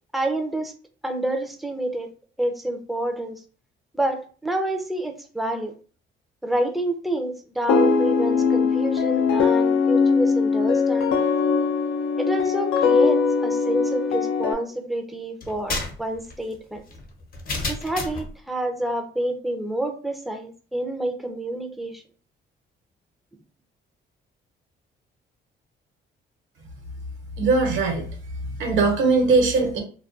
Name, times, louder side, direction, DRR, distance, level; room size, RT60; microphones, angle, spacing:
voice 1, 0.1-0.7 1.0-2.1 2.4-3.4 3.9-5.7 6.4-11.3 12.2-16.8 17.7-22.0, right 1 dB, ahead, 5 dB, 0.4 m, -28 dB
sound 1, 7.7-14.5, left 5 dB, 75° left, 0.4 m, -21 dB
sound 2, 15.4-18.3, left 3 dB, 45° left, 0.7 m, -31 dB
voice 2, 27.4-28.0 28.6-29.8, right 3 dB, 75° right, 2 dB, 0.9 m, -20 dB
2.3 x 2.2 x 2.4 m, 0.40 s
cardioid pair, 90°, 20 cm